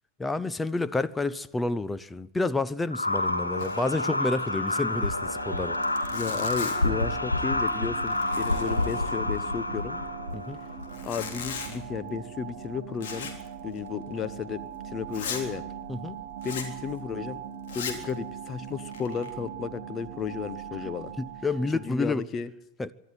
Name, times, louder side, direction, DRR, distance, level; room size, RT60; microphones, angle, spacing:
voice 1, 0.2-5.8 10.3-10.6 15.9-16.2 20.8-20.9 21.2-22.3 22.8-22.9, left 3 dB, 10° left, 0.7 m, -29 dB
sound 1, 2.9-11.0, left 2 dB, 85° left, 1.6 m, -29 dB
sound 2, 3.2-22.1, right 8 dB, 55° right, 1.6 m, -41 dB
Zipper (clothing), 3.6-4.0 4.2-4.3 4.7-4.8 5.4-5.5 5.7-7.0 7.5-7.8 8.0-9.5 10.8-11.8 13.0-13.5 13.8-13.9 14.4-14.5 15.1-15.5 16.4-16.7 17.6-18.1 18.7-19.3, left 6 dB, 55° left, 3.6 m, -38 dB
voice 2, 6.1-10.0 11.0-13.3 13.6-14.6 14.9-15.6 16.4-17.4 17.7-21.1 21.7-22.5, left 7 dB, 25° left, 1.1 m, -33 dB
24.5 x 12.0 x 9.5 m
figure-of-eight pair, 90°, 0 cm